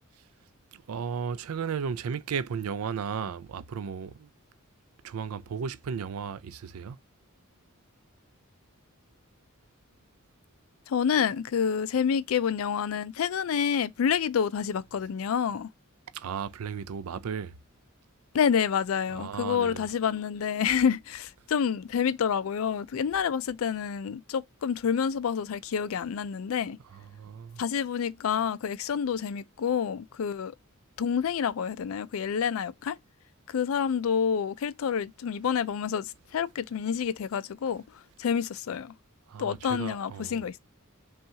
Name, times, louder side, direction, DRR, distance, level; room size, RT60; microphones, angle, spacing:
voice 1, 0.7-4.3 5.0-7.0 16.1-17.5 19.1-19.9 26.9-27.6 39.3-40.4, right 6 dB, 85° right, 0.4 m, -35 dB
voice 2, 10.9-15.7 18.3-26.8 27.6-30.5 31.0-33.0 33.5-37.8 38.2-38.9 39.4-40.6, left 7 dB, 70° left, 0.4 m, -28 dB
5.5 x 2.4 x 2.7 m
head